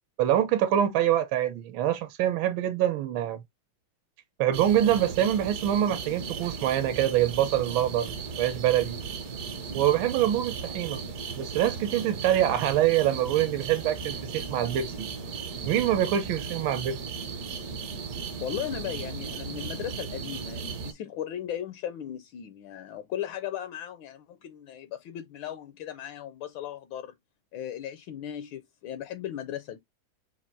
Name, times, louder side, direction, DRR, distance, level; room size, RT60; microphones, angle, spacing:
voice 1, 0.2-3.4 4.4-8.1 8.4-9.0 9.7-11.0 11.4-15.1 15.7-17.0, right 11 dB, 75° right, 1.4 m, -25 dB
sound 1, 4.5-20.9, right 5 dB, 55° right, 1.2 m, -36 dB
voice 2, 18.4-27.1 27.5-29.8, left 10 dB, 75° left, 1.3 m, -37 dB
4.3 x 2.5 x 4.5 m
omnidirectional pair, 2.3 m